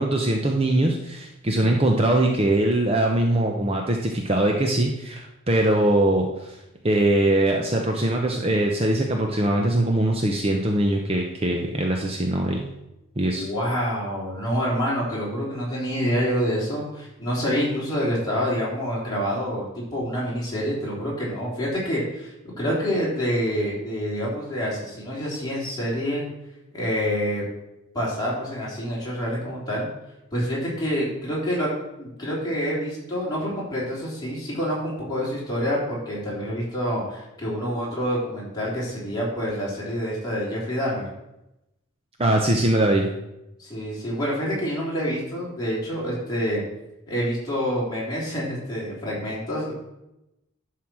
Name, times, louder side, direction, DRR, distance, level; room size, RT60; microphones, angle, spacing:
voice 1, 0.0-6.6 6.8-12.6 13.2-13.5 42.2-43.1, right 1 dB, 25° right, 1 dB, 0.7 m, -22 dB
voice 2, 13.3-26.2 26.7-27.4 27.9-29.9 30.3-31.7 32.0-41.1 43.6-46.6 47.1-49.7, equal, 20° left, -6 dB, 3.6 m, -27 dB
11.0 x 4.7 x 6.1 m, 0.91 s
head